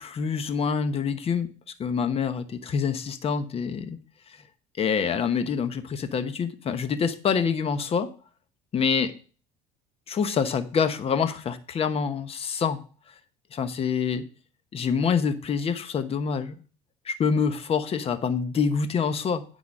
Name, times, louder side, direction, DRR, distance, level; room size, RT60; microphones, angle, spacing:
voice 1, 0.0-1.5 1.8-4.0 4.3-4.4 4.8-8.1 8.7-9.1 10.1-12.8 13.5-14.2 14.7-16.6 17.0-19.4, left 6 dB, 40° left, 12 dB, 1.0 m, -26 dB
9.5 x 4.0 x 6.4 m, 0.39 s
supercardioid pair, 90°, 16 cm